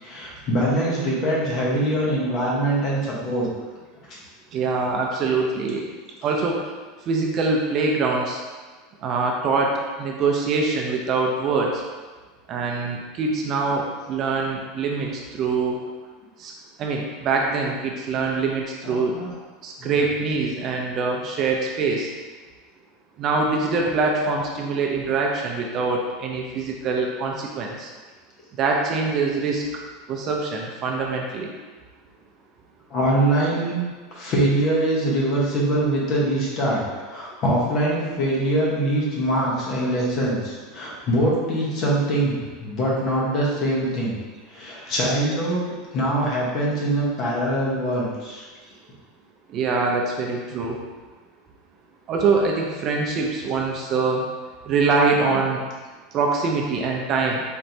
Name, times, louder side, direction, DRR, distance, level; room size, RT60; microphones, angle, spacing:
voice 1, 0.0-3.5 4.1-4.2 18.8-19.3 19.8-20.0 32.9-44.1 44.5-48.4, right 1 dB, 40° left, -5 dB, 1.1 m, -23 dB
voice 2, 4.5-5.8 6.2-6.6 7.1-8.4 9.0-11.8 12.5-15.8 16.4-16.5 16.8-19.2 19.6-22.1 23.2-27.9 28.6-29.6 30.1-31.5 49.5-50.8 52.1-54.2 54.7-55.6 56.1-57.4, right 4 dB, 35° right, 0 dB, 0.5 m, -24 dB
4.3 x 3.1 x 2.7 m, 1.4 s
supercardioid pair, 150°, 0 cm